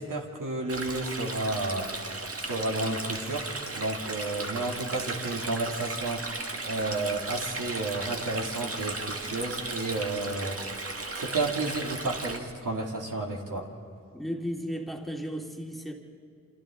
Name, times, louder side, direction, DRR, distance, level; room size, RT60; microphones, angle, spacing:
voice 1, 0.0-1.9 2.4-6.4 6.6-13.7, right 2 dB, 70° right, 0 dB, 2.6 m, -32 dB
Stream, 0.7-12.4, right 2 dB, 45° right, 1.9 m, -36 dB
voice 2, 14.1-15.9, equal, ahead, 0 dB, 2.3 m, -34 dB
28.5 x 26.0 x 3.8 m, 2.4 s
cardioid pair, 55°, 33 cm